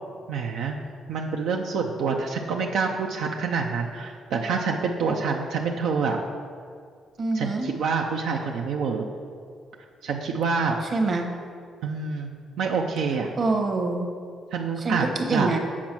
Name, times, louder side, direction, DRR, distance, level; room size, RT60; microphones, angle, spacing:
voice 1, 0.3-0.8 1.1-6.2 7.3-9.0 10.0-10.8 11.8-12.3 12.6-13.3 14.5-15.5, right 5 dB, 80° right, 1 dB, 0.5 m, -27 dB
voice 2, 7.2-7.7 10.9-11.3 13.4-14.1 14.8-15.6, right 3 dB, 45° right, 4 dB, 1.1 m, -25 dB
7.3 x 5.1 x 6.0 m, 2.2 s
cardioid pair, 90°, 0 cm